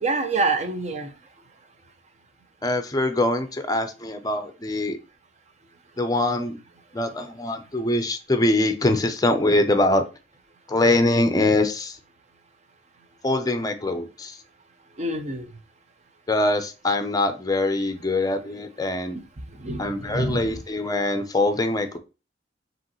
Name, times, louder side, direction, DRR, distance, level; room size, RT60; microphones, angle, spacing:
voice 1, 0.0-1.1 15.0-15.5 19.6-20.6, right 3 dB, 40° right, 0.7 m, -26 dB
voice 2, 2.6-5.0 6.0-6.6 6.9-10.0 10.7-12.0 13.2-14.4 16.3-19.2 19.8-22.0, left 2 dB, 20° left, 0.5 m, -23 dB
5.0 x 3.1 x 3.0 m
head